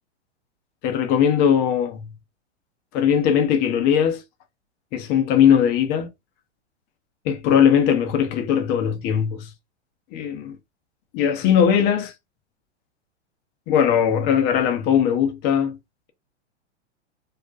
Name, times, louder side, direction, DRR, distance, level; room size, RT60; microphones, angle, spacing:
voice 1, 0.8-2.1 2.9-4.2 4.9-6.1 7.2-9.5 10.1-10.6 11.1-12.1 13.7-15.8, left 8 dB, 30° left, 0.4 m, -19 dB
2.3 x 2.1 x 2.5 m
hypercardioid pair, 110°, 35 cm